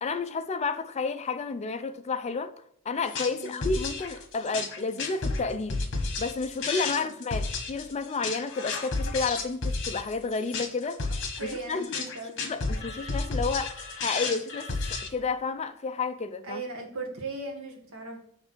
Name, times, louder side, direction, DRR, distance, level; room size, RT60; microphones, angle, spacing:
voice 1, 0.0-2.5 2.9-11.1 11.4-12.1 12.4-16.6, left 4 dB, 30° left, 0.4 m, -31 dB
sound 1, 3.0-15.1, left 3 dB, 60° left, 1.3 m, -32 dB
voice 2, 3.3-3.7 6.9-7.1 11.4-12.5 16.4-18.2, right 3 dB, 70° right, 1.6 m, -38 dB
6.6 x 3.5 x 6.1 m
head